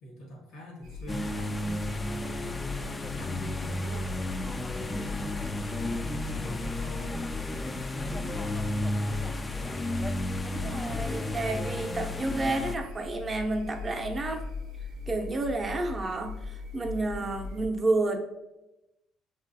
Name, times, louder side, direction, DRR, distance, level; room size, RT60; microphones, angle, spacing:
voice 1, 0.0-4.1 4.5-7.2, left 1 dB, 85° left, 0 dB, 1.1 m, -45 dB
sound 1, 0.8-17.7, left 4 dB, 80° right, 0.6 m, -39 dB
sound 2, 1.1-12.8, left 1 dB, 20° left, 0.3 m, -33 dB
voice 2, 10.4-14.4 15.1-18.2, right 2 dB, 30° right, 4 dB, 0.6 m, -30 dB
5.7 x 2.4 x 2.6 m, 0.95 s
supercardioid pair, 70°, 0 cm